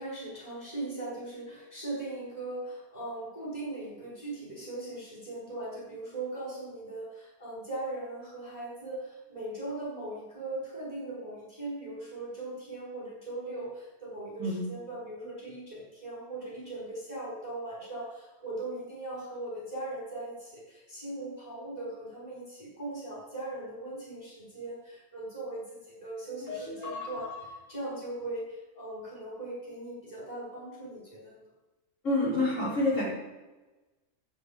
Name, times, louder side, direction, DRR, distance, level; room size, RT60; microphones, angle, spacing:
voice 1, 0.0-31.4, right 2 dB, 30° left, -4 dB, 5.0 m, -39 dB
voice 2, 26.4-27.3 32.0-33.0, left 2 dB, 85° left, -7 dB, 5.5 m, -29 dB
10.0 x 8.3 x 8.7 m, 1.1 s
omnidirectional pair, 1.3 m